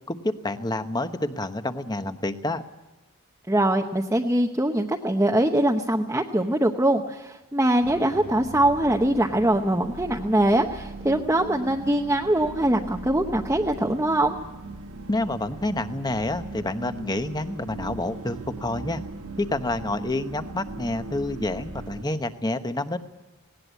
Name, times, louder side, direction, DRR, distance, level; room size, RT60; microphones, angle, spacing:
voice 1, 0.1-2.6 15.1-19.0 19.4-23.0, left 2 dB, 20° left, 10 dB, 1.0 m, -28 dB
voice 2, 3.5-14.4, right 1 dB, 10° right, 2 dB, 0.9 m, -22 dB
sound 1, 7.8-22.0, right 2 dB, 70° right, 1.3 m, -39 dB
19.5 x 18.0 x 8.2 m, 1.1 s
head